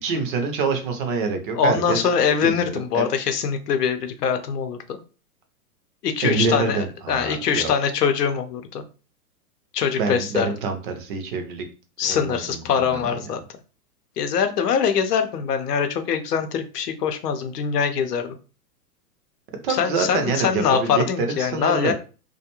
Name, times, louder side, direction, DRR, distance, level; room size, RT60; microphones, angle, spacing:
voice 1, 0.0-2.1 2.4-3.1 6.2-7.7 10.0-11.7 12.0-13.1 19.6-21.9, right 4 dB, 35° right, 5 dB, 0.4 m, -26 dB
voice 2, 1.5-5.0 6.0-8.8 9.7-10.5 12.0-13.4 14.2-18.3 19.7-21.9, left 7 dB, 80° left, 7 dB, 0.7 m, -23 dB
2.4 x 2.2 x 2.8 m, 0.35 s
hypercardioid pair, 125°, 46 cm